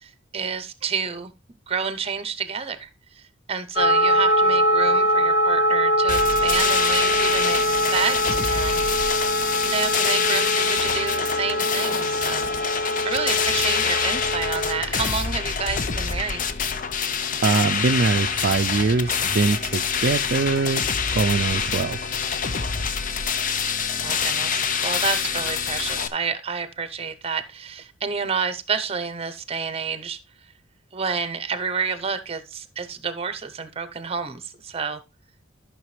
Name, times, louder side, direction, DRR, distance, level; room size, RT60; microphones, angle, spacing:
voice 1, 0.0-1.3 1.7-3.2 3.5-9.1 9.6-12.5 13.0-16.5 24.0-30.2 30.9-35.0, right 5 dB, 30° right, 0.8 m, -29 dB
sound 1, 3.8-14.8, right 1 dB, 75° left, 1.4 m, -23 dB
sound 2, 6.1-26.1, left 6 dB, 45° left, 0.6 m, -26 dB
voice 2, 17.4-20.9 21.1-22.0, right 4 dB, 55° right, 0.4 m, -22 dB
12.5 x 5.9 x 3.2 m
head